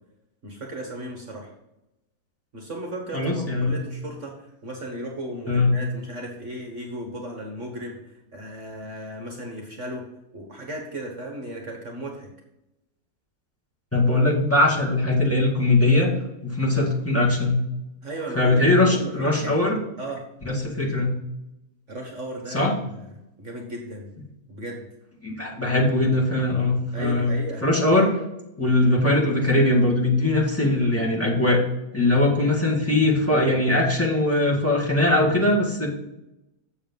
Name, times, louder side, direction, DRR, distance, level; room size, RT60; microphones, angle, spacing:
voice 1, 0.4-1.5 2.5-8.0 8.3-10.1 10.3-12.3 18.0-19.5 20.0-20.2 21.9-23.1 23.4-24.1 24.5-24.9 26.9-27.6 30.7-31.0, right 1 dB, 45° right, 1 dB, 1.5 m, -35 dB
voice 2, 3.1-3.8 5.5-5.7 13.9-16.1 16.4-17.6 18.3-19.8 20.4-21.2 22.5-22.7 25.2-28.1 28.6-31.6 31.9-35.9, left 2 dB, 10° left, -4 dB, 1.9 m, -21 dB
7.2 x 7.2 x 5.4 m, 0.90 s
omnidirectional pair, 2.0 m